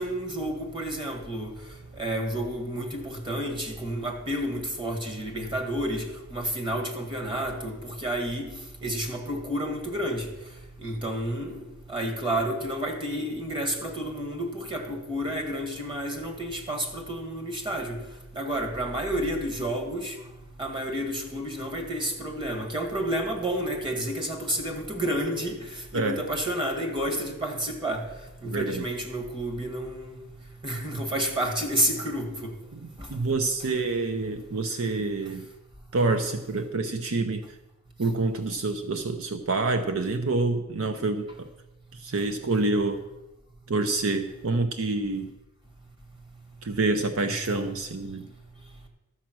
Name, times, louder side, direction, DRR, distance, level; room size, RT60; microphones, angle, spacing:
voice 1, 0.0-1.6 2.0-6.0 6.3-8.5 8.8-10.3 10.8-11.6 11.9-18.0 18.4-20.2 20.6-25.6 25.9-28.0 28.4-30.2 30.6-32.5 47.2-47.7, right 1 dB, 20° right, 1.8 m, -30 dB
voice 2, 25.9-26.2 28.4-28.9 32.7-35.4 35.9-37.6 38.0-41.3 42.0-43.1 43.7-45.3 46.6-48.3, right 3 dB, 65° right, 0.7 m, -27 dB
13.0 x 7.3 x 6.1 m
head